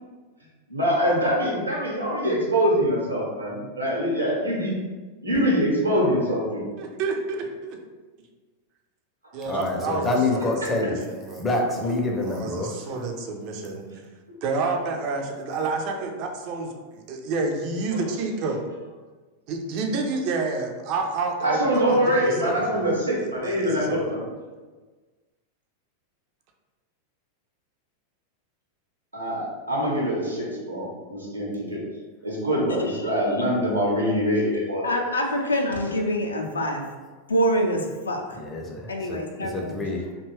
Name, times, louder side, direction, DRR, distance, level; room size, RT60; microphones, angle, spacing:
voice 1, 0.7-4.7 5.2-6.6 21.4-24.2 29.1-31.8 32.2-34.8, equal, 80° right, -4 dB, 0.8 m, -24 dB
voice 2, 6.8-7.8 8.2-8.3 9.3-11.5 12.2-14.1 14.4-18.6 19.5-24.1, right 3 dB, 45° right, 3 dB, 0.4 m, -30 dB
voice 3, 9.4-11.0 11.4-12.8 38.3-40.1, left 2 dB, 15° left, 0 dB, 0.5 m, -27 dB
voice 4, 34.8-36.8 37.3-38.4 38.9-39.7, equal, 75° left, 2 dB, 0.4 m, -25 dB
2.7 x 2.2 x 3.1 m, 1.3 s
figure-of-eight pair, 90°, 0 cm